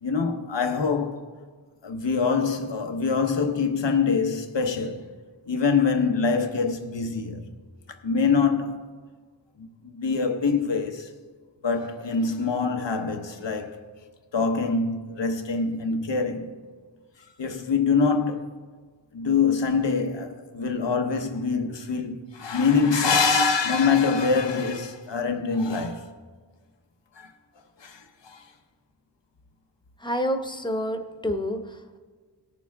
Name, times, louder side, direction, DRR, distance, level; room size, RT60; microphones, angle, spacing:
voice 1, 0.0-1.3 1.8-5.1 5.5-7.5 7.9-8.9 9.6-9.7 9.9-11.1 11.6-13.8 14.3-16.6 17.4-18.5 19.1-26.1 27.2-27.3 27.8-28.4, left 5 dB, 90° left, 1.0 m, -24 dB
voice 2, 30.0-32.0, equal, 10° left, 0.9 m, -28 dB
19.0 x 6.9 x 3.5 m
wide cardioid pair, 70°, 42 cm